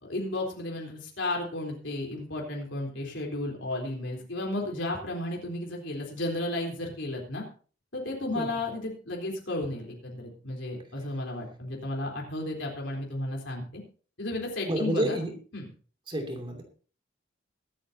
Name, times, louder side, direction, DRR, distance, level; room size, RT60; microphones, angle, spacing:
voice 1, 0.0-7.4 7.9-13.8 14.2-15.2 15.5-15.7, left 1 dB, 70° left, 0 dB, 3.8 m, -33 dB
voice 2, 14.7-15.3 16.1-16.6, right 1 dB, 25° right, 3 dB, 2.7 m, -29 dB
23.0 x 8.8 x 2.8 m, 0.39 s
head